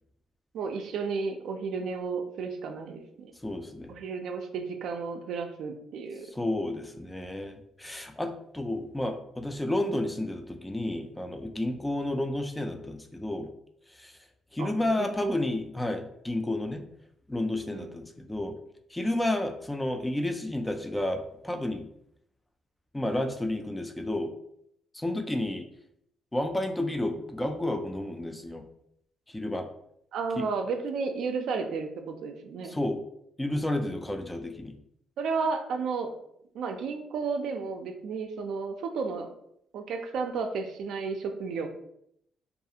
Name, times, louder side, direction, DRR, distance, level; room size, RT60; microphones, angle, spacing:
voice 1, 0.5-3.3 3.9-6.3 14.6-14.7 15.0-15.4 17.7-17.9 30.1-32.8 35.2-36.1 36.5-39.3 39.7-41.7, right 4 dB, 75° right, 5 dB, 0.3 m, -32 dB
voice 2, 3.4-4.0 6.3-13.5 14.0-14.1 14.5-16.8 17.3-18.6 18.9-21.8 22.9-24.3 24.9-25.7 26.3-28.6 29.3-29.7 30.4-30.5 32.6-33.0 33.4-34.7, left 1 dB, 10° left, 6 dB, 0.3 m, -31 dB
2.4 x 2.3 x 2.7 m, 0.72 s
cardioid pair, 90°, 0 cm